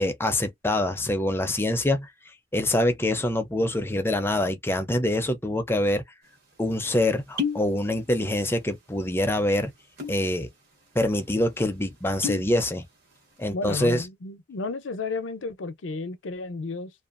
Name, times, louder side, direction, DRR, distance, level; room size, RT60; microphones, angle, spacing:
voice 1, 0.0-2.1 2.5-6.0 6.6-9.7 10.1-10.5 10.9-12.9 13.4-14.1, left 1 dB, 10° left, 0.5 m, -25 dB
sound 1, 6.3-6.4 7.2-7.7 8.0-8.6 8.9-9.1 9.8-10.3 10.7-10.8 11.1-11.3 12.0-12.5 12.9-13.3, left 5 dB, 50° right, 1.3 m, -31 dB
voice 2, 13.5-16.9, left 3 dB, 85° left, 0.6 m, -32 dB
2.5 x 2.4 x 2.4 m
head